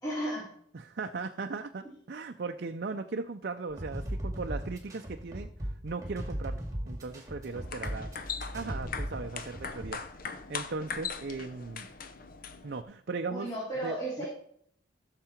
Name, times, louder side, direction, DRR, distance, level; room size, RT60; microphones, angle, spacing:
voice 1, 0.0-0.5 13.3-14.3, right 1 dB, 20° left, -7 dB, 3.6 m, -34 dB
voice 2, 0.7-5.5 5.8-8.1 8.5-11.9 12.6-13.5 13.8-14.3, right 4 dB, 55° right, 5 dB, 0.5 m, -38 dB
sound 1, 3.7-9.9, equal, 20° right, 2.1 m, -37 dB
sound 2, 7.4-12.8, left 5 dB, 50° left, 0.8 m, -40 dB
15.0 x 6.7 x 4.4 m, 0.64 s
head